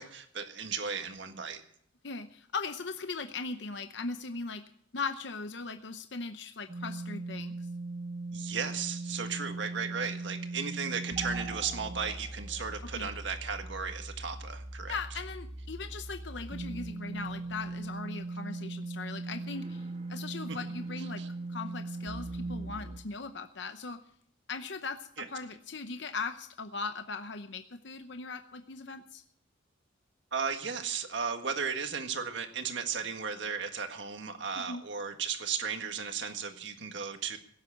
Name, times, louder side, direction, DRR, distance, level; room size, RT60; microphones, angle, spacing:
voice 1, 0.0-1.6 8.3-15.0 20.5-20.6 21.2-21.3 25.2-25.3 30.3-37.4, right 6 dB, 60° right, 6 dB, 1.7 m, -35 dB
voice 2, 2.0-4.6 4.9-7.5 12.8-13.1 14.9-21.2 21.5-24.0 24.5-29.2 34.6-34.8, left 4 dB, 60° left, 8 dB, 0.8 m, -39 dB
sound 1, 6.7-23.0, right 2 dB, 35° right, 1.5 m, -39 dB
17.0 x 7.8 x 8.5 m, 0.65 s
head